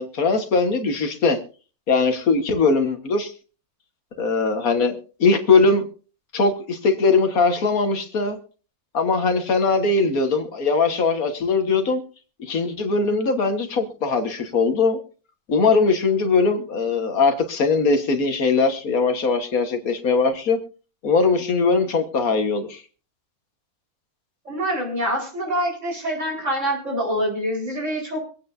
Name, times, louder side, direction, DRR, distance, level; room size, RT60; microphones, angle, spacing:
voice 1, 0.0-1.4 1.9-3.3 4.2-5.9 6.3-8.4 8.9-12.0 12.4-15.0 15.5-20.6 21.0-22.8, left 4 dB, 75° left, 6 dB, 1.9 m, -20 dB
voice 2, 24.4-28.2, equal, 55° right, -2 dB, 4.9 m, -25 dB
25.0 x 8.9 x 2.6 m, 0.38 s
omnidirectional pair, 1.5 m